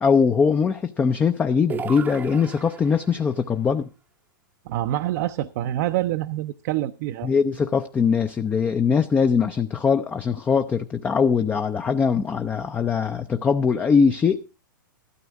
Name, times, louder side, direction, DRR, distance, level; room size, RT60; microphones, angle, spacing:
voice 1, 0.0-3.9 7.2-14.4, left 6 dB, 15° left, 0.5 m, -21 dB
sound 1, 1.7-3.2, right 7 dB, 15° right, 0.7 m, -35 dB
voice 2, 4.7-7.3, right 14 dB, 50° right, 0.6 m, -26 dB
13.5 x 12.5 x 3.6 m
hypercardioid pair, 120°, 11 cm